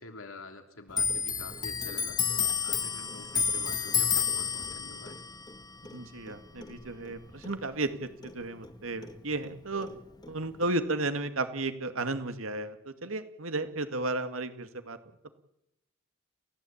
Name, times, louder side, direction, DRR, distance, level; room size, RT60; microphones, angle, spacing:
voice 1, 0.0-2.2 2.6-5.2, left 3 dB, 80° left, 5 dB, 3.1 m, -47 dB
Clock, 0.9-8.0 8.2-9.6 9.8-10.7, left 6 dB, 20° left, 1.4 m, -31 dB
voice 2, 5.9-9.9 10.3-15.0, right 2 dB, 80° right, 8 dB, 2.2 m, -33 dB
29.5 x 15.5 x 8.8 m, 0.85 s
head